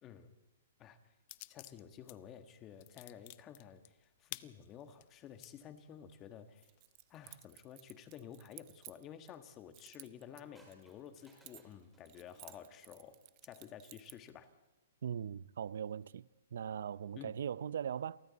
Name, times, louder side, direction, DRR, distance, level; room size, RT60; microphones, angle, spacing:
voice 1, 0.0-0.3 0.8-1.0 1.5-6.7 7.1-14.5 17.2-17.3, left 9 dB, 20° left, 1.6 m, -52 dB
sound 1, 1.3-2.2 2.5-5.5 6.0-6.1 6.6-7.5, left 19 dB, 40° left, 0.6 m, -51 dB
Keys jangling, 6.6-9.4 9.7-11.8 12.1-14.3, right 21 dB, 30° right, 0.9 m, -56 dB
sound 2, 10.6-13.3 14.3-14.7, right 2 dB, 5° right, 4.8 m, -67 dB
voice 2, 15.0-18.2, right 8 dB, 70° right, 0.6 m, -40 dB
29.0 x 23.5 x 4.2 m
hypercardioid pair, 155°, 0 cm